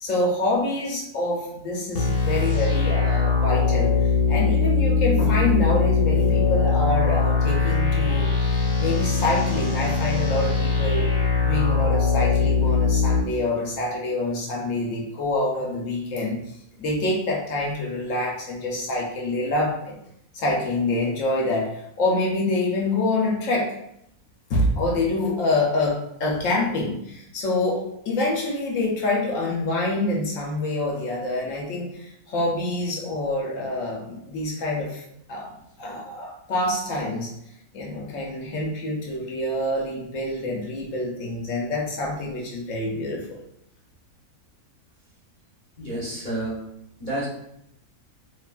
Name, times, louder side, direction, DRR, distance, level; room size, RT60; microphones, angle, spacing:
voice 1, 0.0-8.3 8.8-11.1 11.4-16.4 16.8-20.0 20.3-23.7 24.5-27.8 28.1-35.0 35.3-35.5 35.8-37.3 37.7-43.4, left 2 dB, 65° left, -2 dB, 0.9 m, -26 dB
sound 1, 1.9-13.2, left 4 dB, 90° left, 1.3 m, -21 dB
voice 2, 45.8-46.6 47.0-47.3, right 1 dB, 40° left, -7 dB, 0.8 m, -30 dB
3.1 x 2.3 x 2.2 m, 0.76 s
omnidirectional pair, 1.6 m